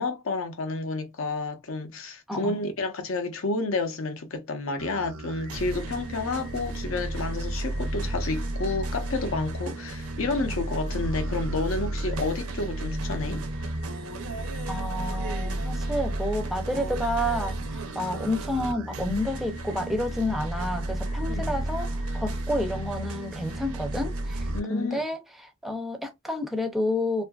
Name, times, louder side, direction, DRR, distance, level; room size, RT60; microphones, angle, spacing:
voice 1, 0.0-13.5 21.2-21.6 24.5-25.0, left 3 dB, 65° left, 0.6 m, -30 dB
voice 2, 2.3-2.6 14.7-27.2, left 1 dB, ahead, 0.5 m, -30 dB
sound 1, 4.8-24.6, right 1 dB, 85° right, 0.6 m, -32 dB
2.7 x 2.5 x 2.3 m
head